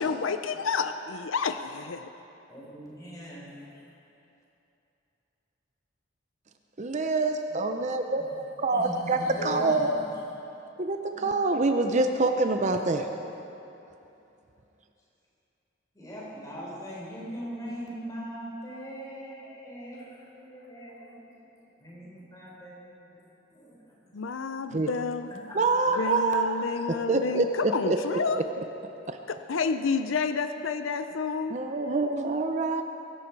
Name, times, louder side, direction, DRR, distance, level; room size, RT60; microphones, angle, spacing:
voice 1, 0.0-2.1 9.4-9.7 24.1-25.3 26.0-28.4 29.3-31.6, left 5 dB, 90° left, 9 dB, 0.6 m, -30 dB
voice 2, 2.5-3.6 8.7-9.9 11.1-11.3 12.7-12.8 15.9-21.3 21.8-23.2 23.5-23.8 24.0-24.1 25.4-25.5, equal, 20° left, -5 dB, 4.3 m, -41 dB
voice 3, 6.8-10.0 10.8-13.0 24.7-24.9 25.6-26.6 27.1-28.0 29.1-29.2 31.5-32.8, right 3 dB, 35° right, 5 dB, 0.6 m, -26 dB
22.5 x 11.5 x 4.7 m, 2.9 s
head